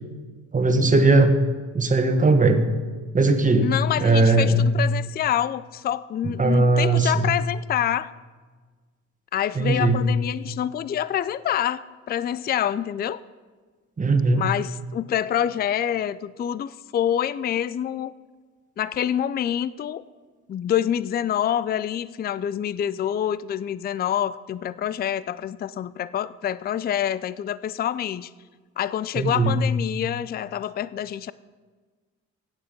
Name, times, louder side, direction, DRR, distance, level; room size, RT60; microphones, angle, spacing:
voice 1, 0.5-1.3 1.7-2.6 3.1-4.7 6.4-7.3 9.5-10.0 14.0-14.4 29.1-29.6, right 2 dB, 25° right, 7 dB, 1.5 m, -19 dB
voice 2, 3.6-8.1 9.3-13.2 14.3-18.1 18.8-20.0 20.5-28.3 28.8-31.3, left 10 dB, 35° left, 17 dB, 0.4 m, -26 dB
15.5 x 8.9 x 5.3 m, 1.4 s
cardioid pair, 90°, 30 cm